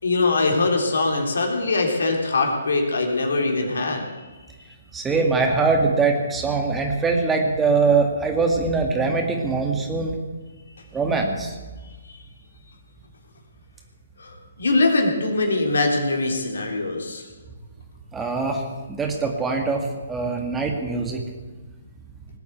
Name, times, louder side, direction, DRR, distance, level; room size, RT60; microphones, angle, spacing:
voice 1, 0.0-4.3 11.8-12.2 14.2-17.3, left 3 dB, 70° left, 2 dB, 3.4 m, -22 dB
voice 2, 4.9-10.2 10.9-11.5 18.1-18.6 18.9-21.2, right 4 dB, 10° right, 2 dB, 2.1 m, -22 dB
19.5 x 8.3 x 8.1 m, 1.3 s
figure-of-eight pair, 135°, 0 cm